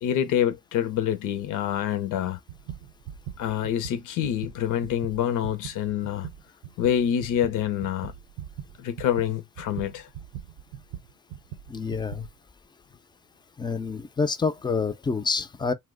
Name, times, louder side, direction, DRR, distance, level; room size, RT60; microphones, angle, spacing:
voice 1, 0.0-2.4 3.4-6.3 6.8-8.1 8.8-10.1, left 10 dB, 85° left, 0.6 m, -26 dB
sound 1, 2.2-12.4, right 10 dB, 85° right, 0.6 m, -41 dB
voice 2, 11.7-12.3 13.6-15.7, left 4 dB, 15° left, 0.4 m, -27 dB
2.9 x 2.1 x 3.5 m
cardioid pair, 90°, 30 cm